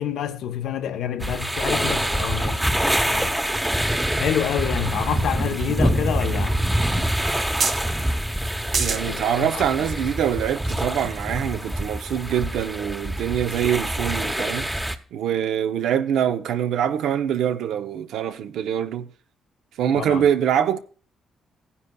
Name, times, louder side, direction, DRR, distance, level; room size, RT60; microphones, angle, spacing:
voice 1, 0.0-3.4 4.2-6.7 9.1-9.7 19.9-20.3, left 9 dB, 85° left, 0.9 m, -28 dB
sound 1, 1.2-14.9, right 1 dB, 5° right, 0.8 m, -25 dB
sound 2, 4.9-5.9 6.4-6.5 6.6-6.7 7.6-7.9 8.7-9.0 9.7-9.8, right 5 dB, 50° right, 1.5 m, -25 dB
voice 2, 8.7-19.1 19.8-20.8, right 9 dB, 85° right, 0.8 m, -24 dB
16.5 x 10.0 x 2.3 m
cardioid pair, 120°, 0 cm